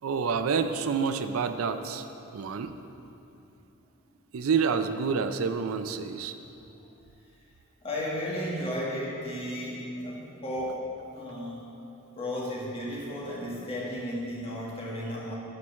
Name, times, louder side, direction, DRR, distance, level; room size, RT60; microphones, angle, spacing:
voice 1, 0.0-2.1 2.3-2.8 4.3-6.4, right 5 dB, 85° right, 9 dB, 0.4 m, -28 dB
voice 2, 7.8-11.7 12.2-15.4, equal, 30° left, -5 dB, 1.6 m, -34 dB
9.7 x 4.4 x 6.3 m, 2.9 s
head